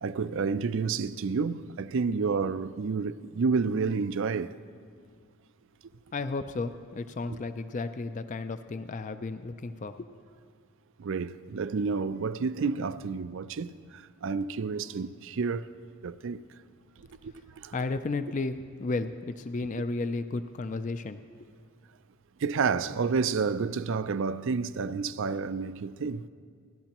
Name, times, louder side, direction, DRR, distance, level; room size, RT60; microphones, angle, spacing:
voice 1, 0.0-4.5 7.3-7.4 11.0-15.7 16.0-16.4 17.2-17.7 22.4-26.3, right 5 dB, 60° right, 0.4 m, -30 dB
voice 2, 6.1-10.1 17.7-21.5, left 3 dB, 35° left, 0.4 m, -33 dB
28.0 x 12.0 x 3.0 m
head